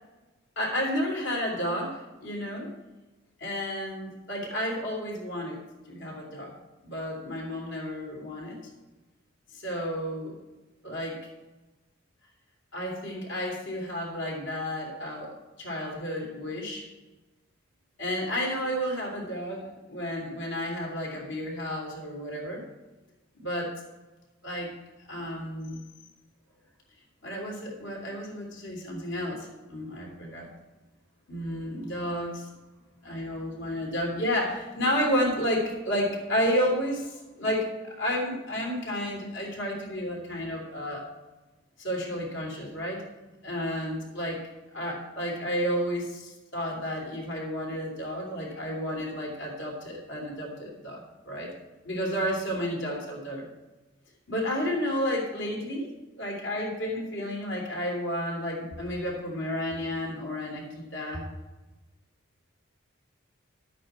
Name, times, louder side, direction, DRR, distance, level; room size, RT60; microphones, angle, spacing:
voice 1, 0.6-2.7 3.4-5.6 5.9-6.5 6.8-8.6 9.5-10.3 10.8-11.2 12.7-16.9 18.0-22.6 23.4-23.8 24.4-24.7 25.1-25.8 27.2-30.5 31.3-32.5 33.0-41.0 41.8-43.0 43.4-44.4 44.7-51.5 51.8-53.4 54.3-55.9 56.2-61.2, equal, 65° left, -2 dB, 3.0 m, -31 dB
11.0 x 8.4 x 4.4 m, 1.1 s
head